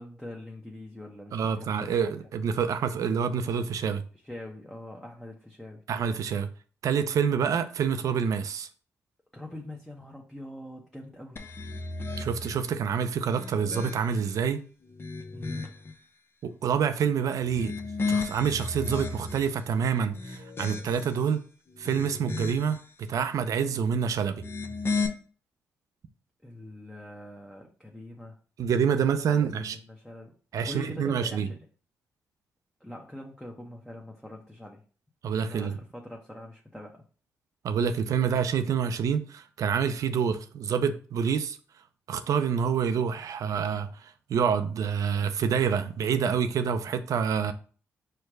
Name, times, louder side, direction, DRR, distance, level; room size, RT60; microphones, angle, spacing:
voice 1, 0.0-2.0 4.2-5.8 9.3-11.4 15.3-15.7 26.4-28.4 28.9-31.7 32.8-34.8 35.4-37.0, left 1 dB, 5° left, 0.8 m, -43 dB
voice 2, 1.3-4.0 5.9-6.5 6.8-8.7 12.2-14.6 16.4-17.7 18.1-21.4 21.8-24.4 28.6-29.8 30.5-31.5 35.2-35.8 37.6-41.6 42.1-47.5, right 7 dB, 65° right, 0.5 m, -27 dB
sound 1, 11.4-12.7 13.2-14.3 14.8-15.9 17.4-19.6 20.1-21.2 21.7-22.8 24.3-25.1, left 4 dB, 40° left, 0.7 m, -34 dB
4.5 x 2.2 x 4.7 m
supercardioid pair, 55°, 6 cm